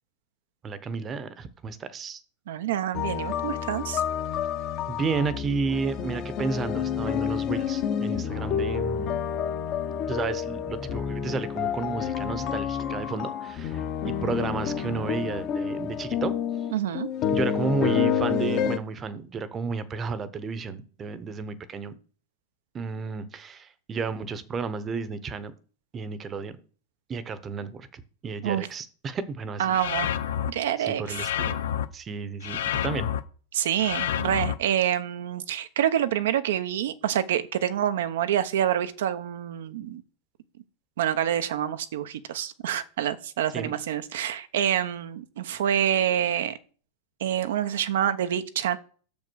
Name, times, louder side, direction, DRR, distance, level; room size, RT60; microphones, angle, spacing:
voice 1, 0.6-2.2 4.9-9.2 10.1-16.7 17.3-21.9 22.7-25.5 25.9-26.6 27.1-30.1 30.8-31.6 31.9-33.1 43.5-43.8, right 5 dB, 25° right, 0.9 m, -32 dB
voice 2, 2.5-4.0 16.7-17.1 28.4-28.7 29.6-30.1 30.5-31.0 33.5-40.0 41.0-46.6 47.2-48.8, right 10 dB, 80° right, 0.8 m, -27 dB
sound 1, 2.9-18.8, left 8 dB, 40° left, 0.9 m, -29 dB
sound 2, 29.7-30.5 31.1-31.9 32.4-33.2 33.8-34.5, left 10 dB, 80° left, 0.6 m, -28 dB
6.6 x 5.2 x 6.3 m
supercardioid pair, 130°, 0 cm